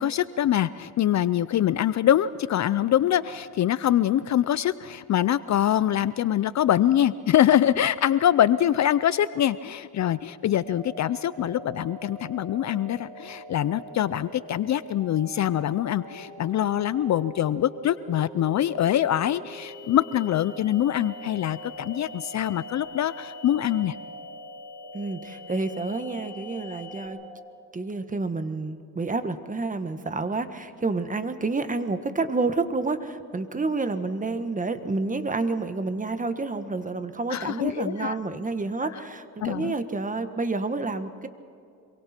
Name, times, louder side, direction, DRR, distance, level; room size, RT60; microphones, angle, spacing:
voice 1, 0.0-24.0 37.3-38.2 39.4-39.7, left 11 dB, 45° left, 16 dB, 0.6 m, -24 dB
sound 1, 10.6-27.3, right 1 dB, 70° right, 6.3 m, -43 dB
sound 2, 19.5-27.1, left 8 dB, 10° left, 4.1 m, -48 dB
voice 2, 24.9-27.2 27.7-41.3, right 3 dB, 20° right, 10 dB, 1.5 m, -29 dB
27.0 x 23.5 x 4.5 m, 2.5 s
cardioid pair, 95°, 38 cm